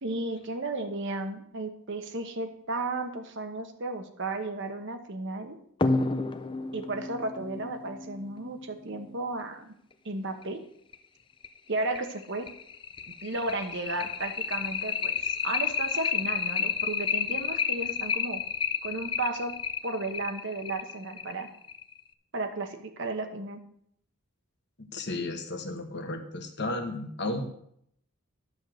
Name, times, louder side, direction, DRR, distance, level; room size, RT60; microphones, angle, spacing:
voice 1, 0.0-5.6 6.7-9.7 10.0-10.6 11.7-12.5 13.2-18.4 18.8-19.5 19.8-21.5 22.3-23.6, right 2 dB, 55° right, 7 dB, 1.1 m, -34 dB
sound 1, 5.8-9.0 10.4-10.5 10.9-11.0 11.4-11.5 12.0-22.0, left 5 dB, 20° left, 0.4 m, -31 dB
voice 2, 24.8-27.5, left 2 dB, 50° left, 5 dB, 1.2 m, -34 dB
11.0 x 4.8 x 7.6 m, 0.69 s
head